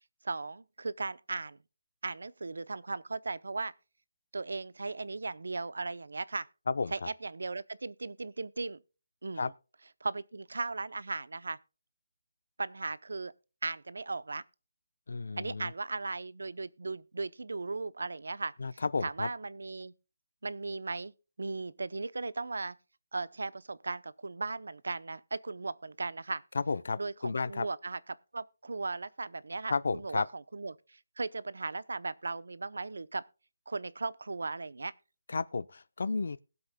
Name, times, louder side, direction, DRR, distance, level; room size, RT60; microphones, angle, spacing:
voice 1, 0.2-1.6 2.0-3.7 4.3-6.5 6.9-8.8 9.2-9.5 10.0-11.6 12.6-13.3 13.6-14.4 15.4-19.9 20.4-21.1 21.4-22.7 23.1-26.4 27.0-28.0 28.3-33.2 33.7-34.9, right 3 dB, 85° right, 0.6 m, -37 dB
voice 2, 6.7-7.1 9.4-9.5 15.1-15.7 18.6-19.3 26.5-27.7 29.7-30.3 35.3-36.4, left 4 dB, 60° left, 0.6 m, -32 dB
21.0 x 7.9 x 2.2 m
hypercardioid pair, 175°, 0 cm